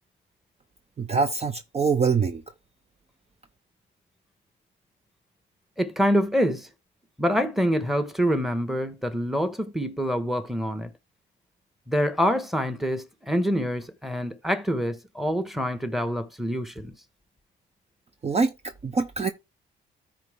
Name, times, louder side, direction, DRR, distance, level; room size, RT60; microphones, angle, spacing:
voice 1, 1.0-2.4 18.2-18.5 18.8-19.3, right 5 dB, 30° right, 0.7 m, -24 dB
voice 2, 5.8-6.7 7.2-10.9 11.9-16.9, equal, ahead, 1.2 m, -26 dB
13.5 x 4.5 x 3.4 m
cardioid pair, 90°, 20 cm